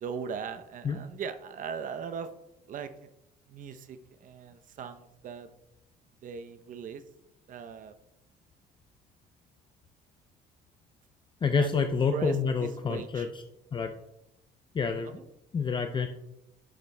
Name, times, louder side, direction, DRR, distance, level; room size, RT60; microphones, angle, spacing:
voice 1, 0.0-2.3 2.7-3.1 3.5-5.5 6.2-7.0 7.5-7.9 11.6-11.7 12.1-13.3 15.0-15.2, right 6 dB, 50° right, 10 dB, 0.7 m, -39 dB
voice 2, 11.4-13.3 13.7-13.9 14.7-15.2 15.5-16.1, left 5 dB, 30° left, 6 dB, 0.5 m, -28 dB
10.5 x 6.8 x 2.2 m, 0.88 s
cardioid pair, 110°, 17 cm